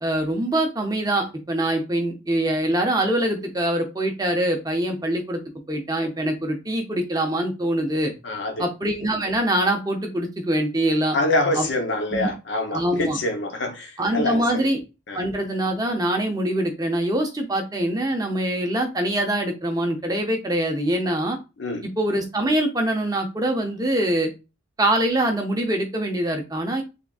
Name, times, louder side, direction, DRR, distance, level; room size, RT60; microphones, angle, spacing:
voice 1, 0.0-5.4 5.7-8.1 8.6-11.2 11.5-11.7 12.1-12.3 12.7-13.2 14.0-14.8 15.1-21.4 22.0-24.3 24.8-26.8, right 1 dB, 20° right, 0.6 m, -24 dB
voice 2, 8.2-8.6 11.1-14.7 15.1-15.2 21.6-21.9, left 2 dB, 60° left, 0.7 m, -25 dB
3.7 x 3.5 x 2.3 m
head